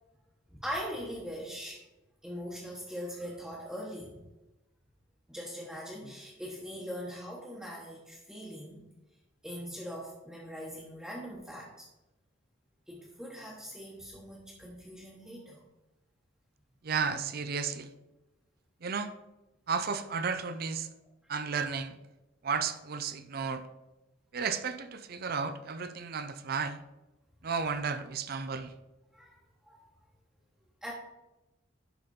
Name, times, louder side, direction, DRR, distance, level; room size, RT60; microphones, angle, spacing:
voice 1, 0.5-1.8 2.2-4.2 5.3-8.9 9.4-11.9 12.9-15.6 29.1-29.4 29.7-29.9 30.8-30.9, equal, 5° right, -6 dB, 1.2 m, -41 dB
voice 2, 16.8-17.9 18.8-19.1 19.7-20.9 21.3-22.0 22.4-23.7 24.3-26.8 27.4-28.7, right 5 dB, 50° right, 10 dB, 0.5 m, -33 dB
11.0 x 4.1 x 4.3 m, 1.0 s
head